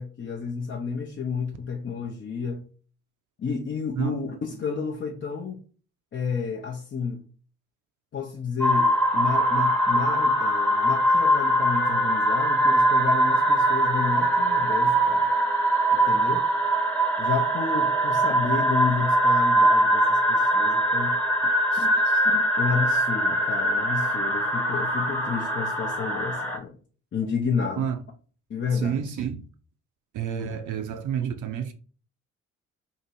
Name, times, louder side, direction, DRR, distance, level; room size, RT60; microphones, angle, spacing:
voice 1, 0.0-2.7 3.4-5.6 6.1-7.2 8.1-15.3 15.9-16.5 17.2-21.2 21.8-26.8 27.1-27.9 28.5-29.2, left 6 dB, 30° left, 0.6 m, -31 dB
sound 1, 8.6-26.6, right 1 dB, 5° left, 1.0 m, -22 dB
voice 2, 28.7-29.5 30.1-31.7, right 8 dB, 50° right, 0.6 m, -30 dB
2.7 x 2.6 x 4.3 m
hypercardioid pair, 40°, 39 cm